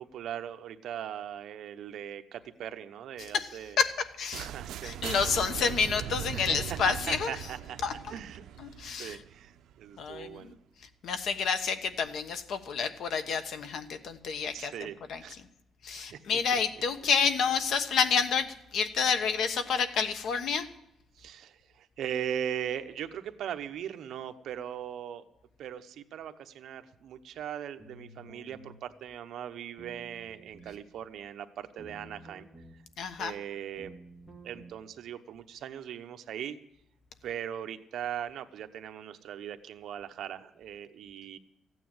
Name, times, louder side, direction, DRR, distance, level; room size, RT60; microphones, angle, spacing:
voice 1, 0.0-3.8 4.4-5.7 6.3-8.4 9.0-10.6 14.5-15.4 15.9-16.6 21.1-25.2 25.6-32.5 32.7-32.8 33.2-33.9 34.4-36.6 37.2-41.4, right 9 dB, 65° right, 8 dB, 0.9 m, -39 dB
voice 2, 3.8-4.5 4.8-7.3 7.8-7.9 8.6-9.2 10.0-10.5 11.0-14.7 15.1-15.2 15.8-20.7 33.0-33.3, left 6 dB, 60° left, 9 dB, 1.1 m, -29 dB
sound 1, 4.3-10.1, right 11 dB, 90° right, 0.5 m, -40 dB
sound 2, 27.8-28.8 29.8-30.8 31.8-32.8 33.8-34.7, right 1 dB, 5° left, 1.9 m, -51 dB
15.0 x 9.3 x 7.8 m, 0.84 s
cardioid pair, 165°, 0 cm